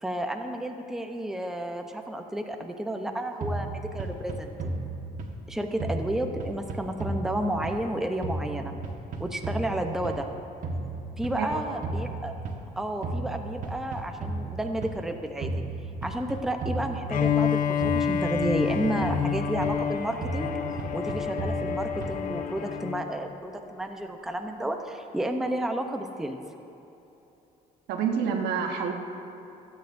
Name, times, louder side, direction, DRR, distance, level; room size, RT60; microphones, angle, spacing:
voice 1, 0.0-4.8 5.5-8.7 9.2-10.3 11.2-12.3 12.8-15.5 16.0-20.5 20.9-26.4, right 1 dB, ahead, 4 dB, 0.8 m, -31 dB
sound 1, 3.4-5.5 5.8-8.0 8.2-10.3 10.6-12.7 13.0-15.0 15.4-17.5 17.8-19.9 20.2-22.3, right 2 dB, 50° right, 1.5 m, -34 dB
voice 2, 11.4-11.8 27.9-28.9, right 6 dB, 80° right, 2 dB, 1.4 m, -28 dB
Bowed string instrument, 17.1-23.1, left 8 dB, 55° left, 0.8 m, -28 dB
27.0 x 9.1 x 2.7 m, 3.0 s
cardioid pair, 110°, 17 cm